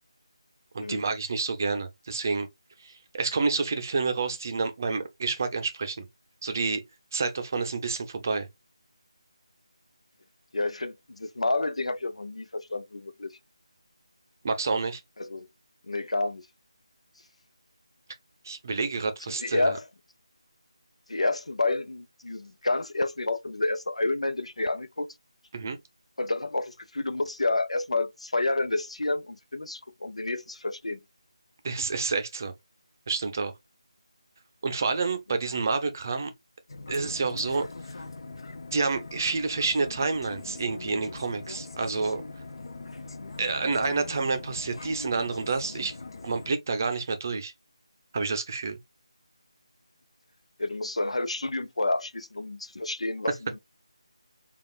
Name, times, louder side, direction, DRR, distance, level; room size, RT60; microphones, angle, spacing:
voice 1, 0.7-2.5 2.8-6.1 6.4-6.8 7.1-8.5 14.4-15.0 18.4-19.8 25.5-25.8 31.6-32.5 33.1-33.5 34.6-36.3 36.9-37.7 38.7-42.2 43.4-46.0 46.2-47.5 48.1-48.8, right 4 dB, 30° right, 0.6 m, -29 dB
voice 2, 10.5-13.3 15.2-15.5 15.9-16.4 19.4-19.8 21.1-25.1 26.2-31.0 50.6-53.6, left 2 dB, 85° left, 0.7 m, -29 dB
sound 1, 36.7-46.5, left 3 dB, 50° left, 0.5 m, -41 dB
5.2 x 2.4 x 2.3 m
figure-of-eight pair, 170°, 3 cm